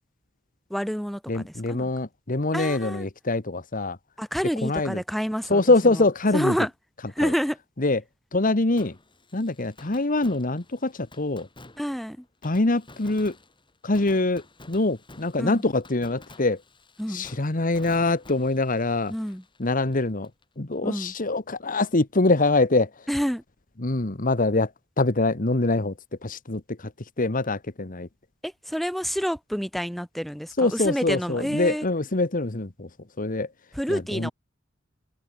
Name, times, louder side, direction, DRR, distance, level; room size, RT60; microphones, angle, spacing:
voice 1, 0.7-1.8 2.5-3.1 4.2-5.6 6.3-6.7 7.2-7.6 11.8-12.2 15.4-15.6 17.0-17.3 19.1-19.4 20.8-21.1 23.1-23.4 28.4-31.8 33.8-34.3, equal, ahead, 1.5 m, -28 dB
voice 2, 1.3-4.0 4.6-5.0 5.5-6.6 7.2-7.3 7.8-8.0 8.3-9.0 9.3-11.5 12.4-13.3 13.8-16.6 17.1-19.1 19.6-20.3 20.6-23.1 23.8-24.7 25.0-25.9 26.2-26.9 27.2-28.1 30.6-32.9 33.2-33.5 33.9-34.3, left 2 dB, 45° left, 1.4 m, -24 dB
Fireworks, 8.8-20.4 20.7-20.8 27.4-27.5, left 2 dB, 25° left, 7.7 m, -50 dB
head